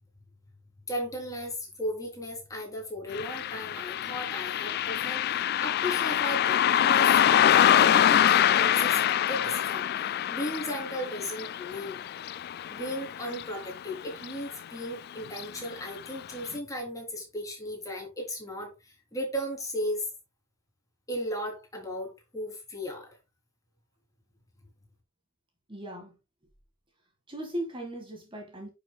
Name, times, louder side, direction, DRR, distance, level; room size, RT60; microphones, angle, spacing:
voice 1, 0.9-12.0 12.7-20.1 21.1-23.1, equal, 15° left, 3.3 m, -36 dB
Car passing by, 3.1-13.9 14.2-14.3 15.3-15.4 15.9-16.0 16.5-16.6, left 10 dB, 50° left, 0.3 m, -25 dB
voice 2, 25.7-26.2 27.3-28.7, right 1 dB, 25° right, 1.9 m, -37 dB
10.0 x 6.6 x 2.3 m
head